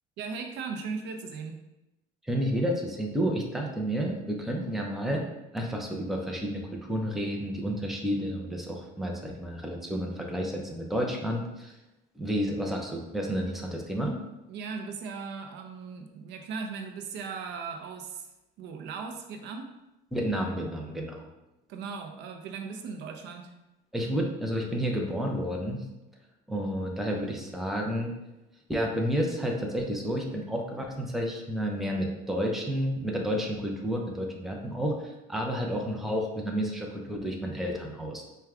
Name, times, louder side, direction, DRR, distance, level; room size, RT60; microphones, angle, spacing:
voice 1, 0.2-1.6 14.5-18.3 18.6-19.7 21.7-23.5, right 5 dB, 65° right, 4 dB, 0.5 m, -38 dB
voice 2, 2.2-5.2 5.5-11.7 12.2-14.2 20.1-21.3 23.9-25.8 26.5-28.1 28.7-38.2, equal, ahead, 0 dB, 0.6 m, -31 dB
4.5 x 2.2 x 3.6 m, 0.95 s
cardioid pair, 120°, 20 cm